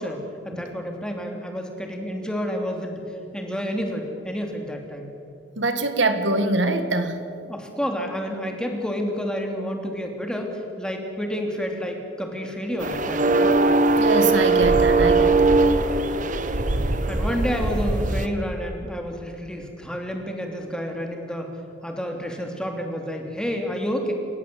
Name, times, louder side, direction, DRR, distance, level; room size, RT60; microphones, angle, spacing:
voice 1, 0.0-3.0 3.3-5.1 7.5-13.5 17.1-24.1, equal, 5° left, 2 dB, 2.9 m, -29 dB
voice 2, 5.6-7.2 14.0-15.8, right 2 dB, 75° right, 8 dB, 1.9 m, -24 dB
sound 1, 12.8-18.3, right 3 dB, 45° right, 1.1 m, -20 dB
28.5 x 15.5 x 7.7 m, 2.7 s
head